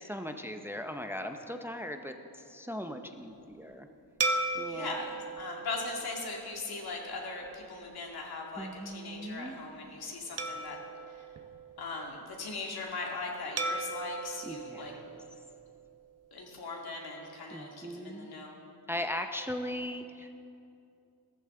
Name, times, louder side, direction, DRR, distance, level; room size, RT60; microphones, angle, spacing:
voice 1, 0.0-3.9 4.5-5.0 8.6-9.6 14.4-15.0 17.5-18.3 18.9-20.3, left 1 dB, 5° right, 6 dB, 0.6 m, -39 dB
sound 1, 4.2-6.9 7.5-7.6 10.4-12.2 13.6-15.9, right 3 dB, 40° right, 0.8 m, -37 dB
voice 2, 4.7-10.8 11.2-11.3 11.8-14.9 16.3-18.5, left 3 dB, 70° left, -1 dB, 2.3 m, -39 dB
15.5 x 13.5 x 3.8 m, 2.6 s
wide cardioid pair, 125°, 39 cm